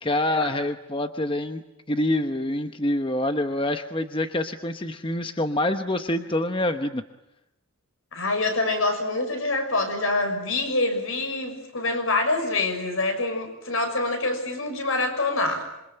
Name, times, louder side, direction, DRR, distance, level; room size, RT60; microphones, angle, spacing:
voice 1, 0.0-7.0, left 1 dB, 25° left, 7 dB, 0.9 m, -26 dB
voice 2, 8.1-15.6, left 2 dB, 75° left, 5 dB, 6.4 m, -25 dB
27.0 x 24.0 x 8.9 m, 0.89 s
head